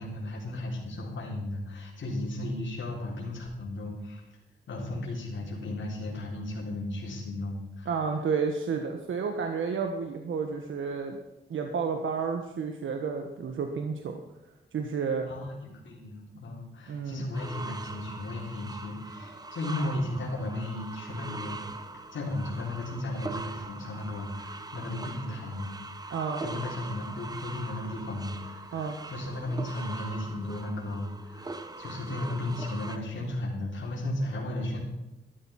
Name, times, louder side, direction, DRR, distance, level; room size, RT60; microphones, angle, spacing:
voice 1, 0.0-4.2 4.7-7.9 15.3-15.5 15.8-21.6 22.1-25.7 26.0-26.2 26.4-34.8, left 1 dB, 75° left, -3 dB, 3.6 m, -35 dB
voice 2, 7.9-11.2 11.5-14.2 14.7-15.3 16.9-17.2 26.1-26.4 28.7-29.0, right 5 dB, 85° right, 4 dB, 1.3 m, -31 dB
sound 1, 17.3-33.0, right 3 dB, 20° right, 0.9 m, -41 dB
13.5 x 12.5 x 5.8 m, 0.95 s
wide cardioid pair, 165°, 20 cm